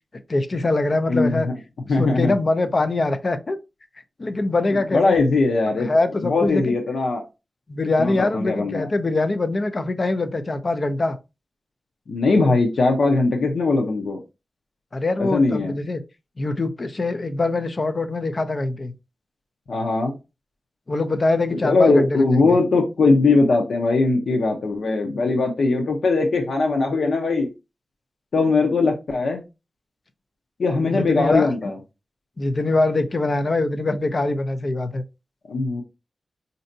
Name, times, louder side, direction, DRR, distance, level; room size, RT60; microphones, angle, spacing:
voice 1, 0.3-1.5 2.0-3.6 4.2-5.2 5.8-6.8 7.7-11.2 14.9-16.0 16.4-18.9 20.9-22.3 30.9-31.5 32.4-35.0, left 2 dB, 35° left, 0.4 m, -23 dB
voice 2, 1.1-1.5 1.9-2.3 4.9-5.9 6.3-7.2 8.0-8.9 12.1-14.2 15.2-15.7 19.7-20.1 21.5-27.5 28.3-29.4 30.6-31.8 35.5-35.8, left 3 dB, 75° left, 0.7 m, -20 dB
4.3 x 2.7 x 2.6 m
wide cardioid pair, 150°, 0 cm